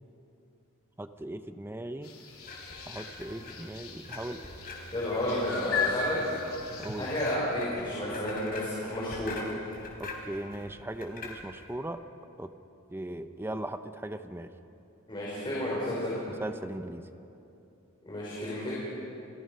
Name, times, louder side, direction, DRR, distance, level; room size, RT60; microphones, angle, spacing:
voice 1, 1.0-2.2 2.9-4.5 6.8-7.1 10.0-12.0 12.4-12.5 12.9-14.5 16.4-17.0, right 1 dB, 10° right, 9 dB, 0.7 m, -38 dB
sound 1, 2.0-7.4, left 5 dB, 70° left, 3.8 m, -37 dB
sound 2, 2.4-11.8, left 2 dB, 45° left, 4.0 m, -44 dB
voice 2, 4.9-6.2 6.9-9.4 15.1-16.1 18.1-18.7, left 1 dB, 20° left, -8 dB, 5.7 m, -31 dB
30.0 x 20.0 x 5.5 m, 2.8 s
head